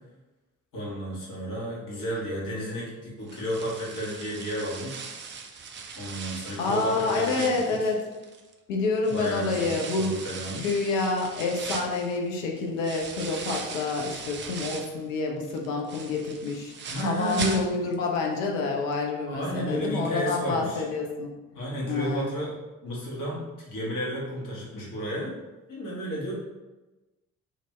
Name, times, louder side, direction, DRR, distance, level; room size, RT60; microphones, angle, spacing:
voice 1, 0.7-5.0 6.0-7.9 9.0-10.6 16.9-17.6 19.3-20.9 21.5-22.5 22.8-25.3 25.7-26.3, right 1 dB, 50° left, -5 dB, 1.3 m, -32 dB
sound 1, 3.3-8.5 9.0-15.0 15.4-18.1 18.4-18.5 18.9-19.0, right 5 dB, 30° right, 0.4 m, -39 dB
voice 2, 6.6-8.0 8.7-10.1 10.5-21.3 21.9-22.3, left 3 dB, 70° left, 0 dB, 0.6 m, -28 dB
2.6 x 2.5 x 3.2 m, 1.1 s
figure-of-eight pair, 40°, 41 cm